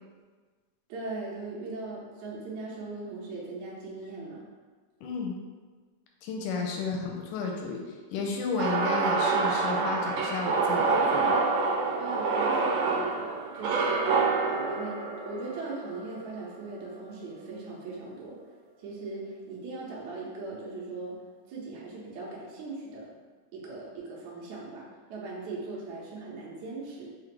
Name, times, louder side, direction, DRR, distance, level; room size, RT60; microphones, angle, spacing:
voice 1, 0.9-4.4 12.0-14.1 14.4-18.4 18.8-21.2 21.5-23.1 23.5-27.1, right 3 dB, 75° right, -4 dB, 1.9 m, -39 dB
voice 2, 5.0-5.4 6.2-7.8 8.1-11.4, left 4 dB, 80° left, 1 dB, 1.8 m, -32 dB
sound 1, 8.6-16.7, right 4 dB, 90° right, 2.3 m, -27 dB
5.7 x 2.0 x 3.2 m, 1.5 s
omnidirectional pair, 4.0 m